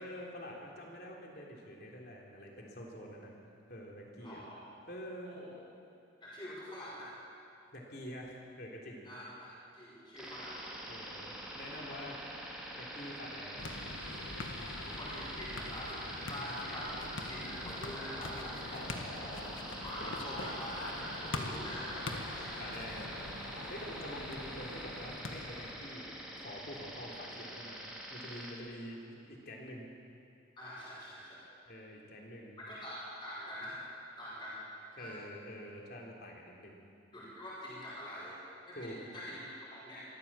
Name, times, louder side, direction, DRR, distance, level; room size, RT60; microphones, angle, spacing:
voice 1, 0.0-3.3 3.7-4.4 4.9-5.4 7.7-9.0 10.9-12.2 12.7-13.7 18.7-19.6 22.6-26.1 26.4-29.9 31.7-32.6 35.0-36.8 38.8-39.0, equal, 50° left, -1 dB, 3.5 m, -47 dB
voice 2, 4.2-4.6 5.2-5.5 6.2-7.1 9.1-10.6 14.9-18.7 19.8-22.8 30.6-31.5 32.7-34.7 34.9-35.2 37.1-40.0, equal, 25° left, -8 dB, 5.5 m, -45 dB
sound 1, 10.1-28.5, right 1 dB, 5° right, 3.0 m, -45 dB
sound 2, 13.6-25.7, left 2 dB, 85° left, 1.7 m, -43 dB
24.0 x 14.5 x 7.5 m, 2.6 s
head